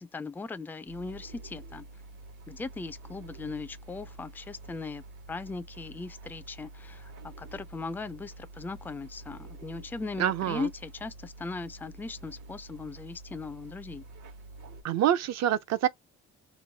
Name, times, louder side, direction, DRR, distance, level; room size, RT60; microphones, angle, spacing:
voice 1, 0.0-1.8 2.5-14.0, left 3 dB, 5° left, 0.3 m, -39 dB
sound 1, 0.9-14.8, right 2 dB, 80° right, 1.1 m, -48 dB
voice 2, 10.2-10.7 14.8-15.9, right 11 dB, 60° right, 0.5 m, -26 dB
3.1 x 2.1 x 2.7 m
cardioid pair, 90°, 30 cm